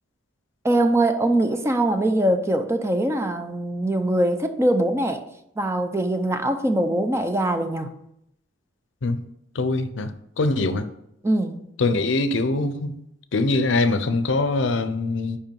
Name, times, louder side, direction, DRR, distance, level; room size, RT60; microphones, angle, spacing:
voice 1, 0.6-5.2 5.6-7.9 11.2-11.6, right 1 dB, 15° right, 0.5 m, -22 dB
voice 2, 9.5-10.9 11.8-12.9 13.3-15.4, left 3 dB, 70° left, 0.6 m, -23 dB
5.3 x 4.8 x 5.3 m
head